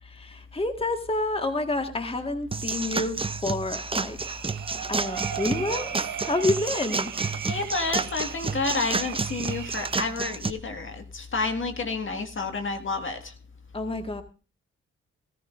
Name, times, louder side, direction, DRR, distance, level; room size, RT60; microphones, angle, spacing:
voice 1, 0.0-4.3 4.9-7.1 13.7-14.2, left 2 dB, 20° left, 7 dB, 1.6 m, -29 dB
sound 1, 2.5-10.5, right 4 dB, 20° right, 0.7 m, -30 dB
sound 2, 4.2-10.1, right 9 dB, 80° right, 1.5 m, -37 dB
voice 2, 7.4-13.3, left 3 dB, 40° left, 6 dB, 1.8 m, -30 dB
17.0 x 14.0 x 2.5 m, 0.33 s
supercardioid pair, 50°, 30 cm